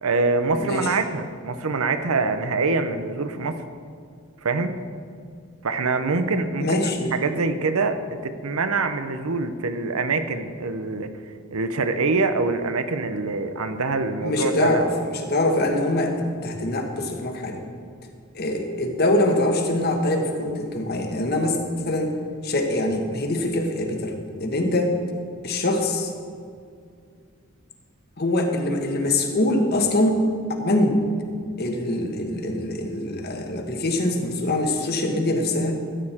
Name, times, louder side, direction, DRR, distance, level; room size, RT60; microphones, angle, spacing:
voice 1, 0.0-3.6 4.4-4.8 5.6-11.1 11.5-14.8, right 3 dB, 85° right, 9 dB, 0.8 m, -25 dB
voice 2, 0.6-0.9 6.6-7.1 14.2-17.6 18.3-21.6 21.9-22.1 22.4-24.9 25.4-26.1 28.2-30.2 30.6-31.1 31.6-35.8, left 1 dB, 45° left, 3 dB, 1.2 m, -23 dB
14.0 x 8.7 x 4.3 m, 2.2 s
head